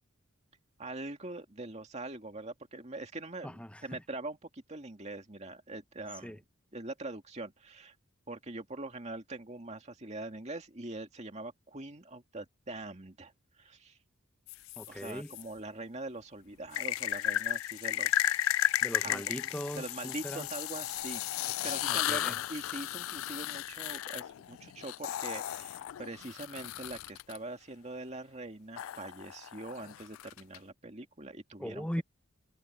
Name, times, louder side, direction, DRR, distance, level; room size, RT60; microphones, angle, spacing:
voice 1, 0.8-6.4 6.7-7.9 8.3-13.3 13.6-14.0 14.9-18.5 19.0-19.2 19.8-31.9, right 2 dB, 30° right, 2.2 m, -43 dB
voice 2, 3.4-4.0 6.2-6.4 14.8-15.3 18.8-20.5 21.7-22.4 31.6-32.0, equal, 5° left, 1.0 m, -39 dB
sound 1, 14.5-15.4 16.7-27.4 28.8-30.6, left 13 dB, 70° left, 0.3 m, -34 dB
head